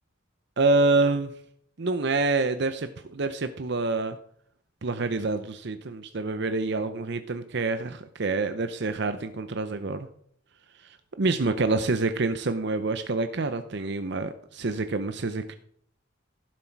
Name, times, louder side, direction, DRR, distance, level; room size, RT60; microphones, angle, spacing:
voice 1, 0.6-1.3 1.8-4.2 4.8-10.1 10.8-15.6, right 3 dB, 55° right, 10 dB, 0.7 m, -27 dB
16.0 x 7.6 x 4.6 m, 0.65 s
head